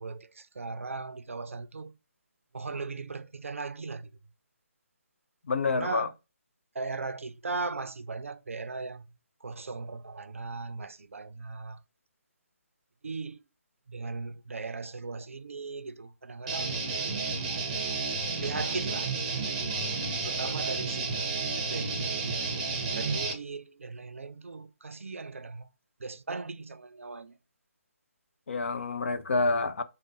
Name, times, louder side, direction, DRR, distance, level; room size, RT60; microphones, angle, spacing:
voice 1, 0.0-1.9 2.5-4.1 5.7-6.1 6.7-9.1 9.4-11.8 13.0-13.4 13.9-16.8 18.4-19.4 20.2-22.4 23.0-25.7 26.0-27.4, right 3 dB, 70° right, 0.5 m, -38 dB
voice 2, 5.5-6.1 28.5-29.8, left 3 dB, 55° left, 0.5 m, -28 dB
Guitar, 16.5-23.3, right 4 dB, 20° right, 0.7 m, -31 dB
4.8 x 2.1 x 2.6 m
figure-of-eight pair, 145°, 8 cm